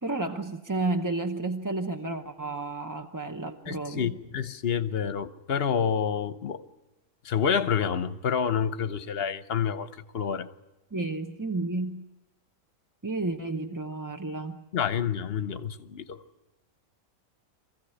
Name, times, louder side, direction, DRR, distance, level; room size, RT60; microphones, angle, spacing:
voice 1, 0.0-4.2 10.9-12.0 13.0-14.6, right 2 dB, 20° right, 0.6 m, -31 dB
voice 2, 3.7-6.6 7.2-9.9 10.1-10.5 14.7-16.2, left 7 dB, 45° left, 1.1 m, -28 dB
24.5 x 15.5 x 9.9 m
omnidirectional pair, 1.6 m